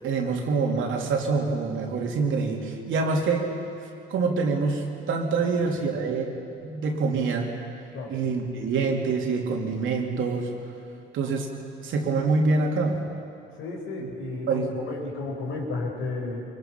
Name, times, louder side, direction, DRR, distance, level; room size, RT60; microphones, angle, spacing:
voice 1, 0.0-3.5 4.1-6.3 6.6-7.5 8.1-10.5 11.1-11.5 11.8-13.0 14.0-14.1 14.5-14.7, right 4 dB, 80° right, 1 dB, 2.8 m, -25 dB
voice 2, 13.6-16.4, left 3 dB, 90° left, 0 dB, 4.3 m, -32 dB
24.0 x 22.0 x 5.9 m, 2.5 s
cardioid pair, 90°, 20 cm